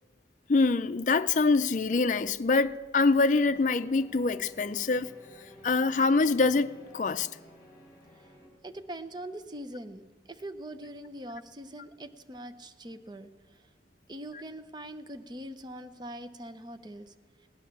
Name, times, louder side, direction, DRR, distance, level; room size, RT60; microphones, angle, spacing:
voice 1, 0.5-5.1 5.6-7.3, left 3 dB, 45° left, 0.5 m, -25 dB
sound 1, 3.3-8.5, equal, 20° left, 3.6 m, -54 dB
voice 2, 8.6-10.0 10.3-13.3 14.1-17.1, right 1 dB, 25° right, 0.7 m, -42 dB
17.5 x 9.6 x 7.1 m
head